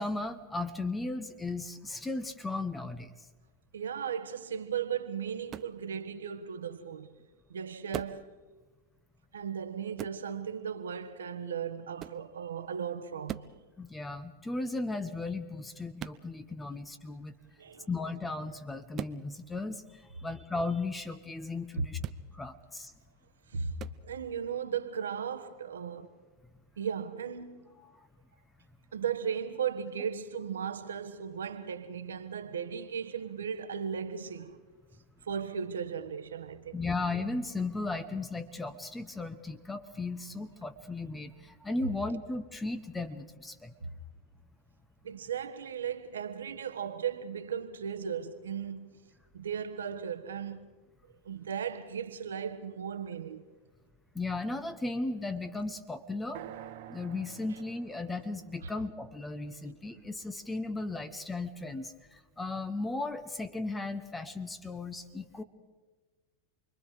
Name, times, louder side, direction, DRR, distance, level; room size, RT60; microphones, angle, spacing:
voice 1, 0.0-3.1 13.8-17.3 17.9-22.0 22.3-22.9 36.7-43.7 54.1-56.4 56.9-65.4, left 3 dB, 10° left, 1.3 m, -36 dB
voice 2, 3.7-7.1 7.5-8.3 9.3-13.5 17.6-17.9 21.8-22.1 23.5-26.2 26.8-27.9 28.9-34.6 35.2-36.8 43.8-43.9 45.0-48.9 49.3-50.7 51.2-53.4 58.6-58.7, right 7 dB, 80° right, 1.4 m, -36 dB
sound 1, 5.5-5.8 7.9-8.3 10.0-10.2 12.0-12.2 13.3-13.6 16.0-16.2 18.9-19.2 22.0-22.2 23.8-24.0, right 11 dB, 35° right, 0.7 m, -39 dB
sound 2, 56.3-60.3, right 11 dB, 65° right, 1.4 m, -49 dB
29.0 x 22.5 x 5.1 m
hypercardioid pair, 95°, 0 cm